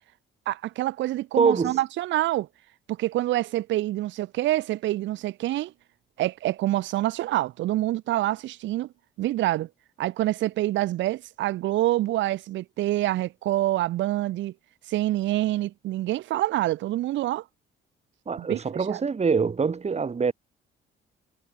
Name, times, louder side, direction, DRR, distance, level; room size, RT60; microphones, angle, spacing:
voice 1, 0.5-2.5 2.9-5.7 6.2-8.9 9.2-9.7 10.0-14.5 14.9-17.4 18.4-18.6 18.9-19.0, right 15 dB, 70° right, 0.5 m, -26 dB
voice 2, 1.4-1.8 18.3-20.3, right 5 dB, 35° right, 2.0 m, -24 dB
cardioid pair, 90°, 20 cm